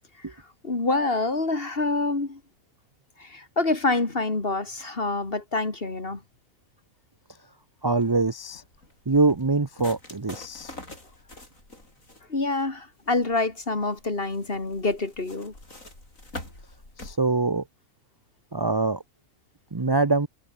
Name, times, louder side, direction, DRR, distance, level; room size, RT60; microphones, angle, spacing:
voice 1, 0.6-2.4 3.2-6.2 12.3-15.5, left 3 dB, 40° left, 3.0 m, -26 dB
voice 2, 7.8-8.6 9.1-10.7 17.0-17.6 18.5-19.0 19.7-20.3, right 3 dB, 25° right, 0.6 m, -24 dB
sound 1, 7.9-17.2, left 2 dB, 65° left, 7.7 m, -45 dB
omnidirectional pair, 1.5 m